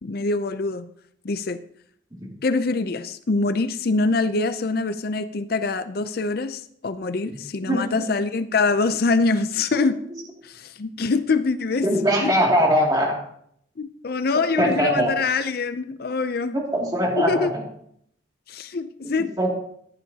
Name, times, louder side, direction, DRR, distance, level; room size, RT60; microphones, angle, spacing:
voice 1, 0.0-0.9 1.2-1.6 2.4-10.0 10.4-11.9 12.2-12.3 13.8-16.6 17.1-17.5 18.5-19.5, left 3 dB, 50° left, 12 dB, 0.5 m, -24 dB
voice 2, 7.7-8.1 9.7-9.9 11.8-13.1 14.6-15.1 16.5-17.6 19.0-19.5, equal, 20° right, -2 dB, 2.4 m, -22 dB
14.5 x 11.5 x 2.8 m, 0.69 s
head